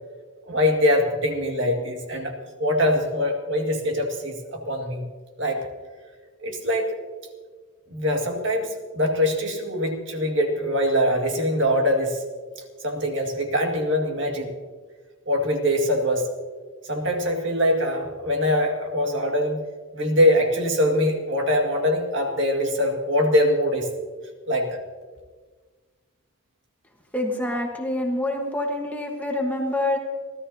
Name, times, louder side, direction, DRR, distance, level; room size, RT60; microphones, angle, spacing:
voice 1, 0.5-2.3 2.6-5.0 5.4-5.6 6.4-6.9 7.9-12.2 12.8-14.5 15.3-16.3 16.8-19.6 19.9-23.9 24.5-24.8, left 1 dB, 60° right, 2 dB, 2.0 m, -23 dB
voice 2, 27.1-30.0, left 1 dB, 10° left, 1 dB, 1.3 m, -26 dB
28.0 x 13.0 x 2.8 m, 1.5 s
head